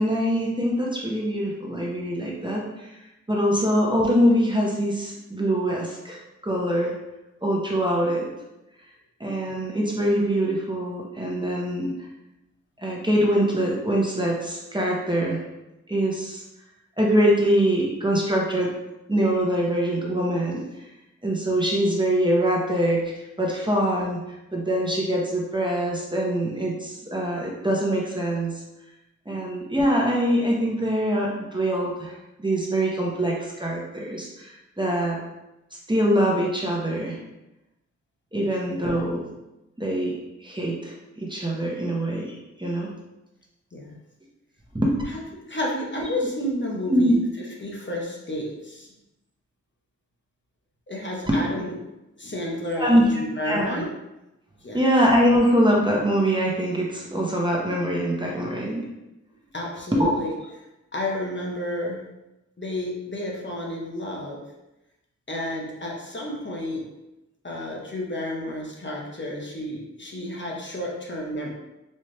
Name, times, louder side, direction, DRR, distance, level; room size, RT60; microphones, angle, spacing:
voice 1, 0.0-3.0 3.3-6.9 7.4-8.3 9.2-11.9 12.8-15.4 15.9-16.4 17.0-18.7 19.1-20.9 21.2-24.2 24.5-28.6 29.3-35.2 35.7-37.2 38.3-39.2 39.8-40.1 40.4-42.9 44.7-45.0 46.9-47.1 51.3-51.4 52.8-53.1 53.4-53.8 54.7-58.9 59.9-60.1, equal, 15° right, -3 dB, 0.9 m, -23 dB
voice 2, 45.5-48.9 50.9-51.7 52.2-53.9 54.6-54.8 59.5-60.4 60.9-62.0 62.6-64.4 65.3-66.8 67.4-71.5, left 1 dB, 40° left, -2 dB, 0.9 m, -31 dB
4.2 x 2.4 x 3.2 m, 0.96 s
wide cardioid pair, 55°, 29 cm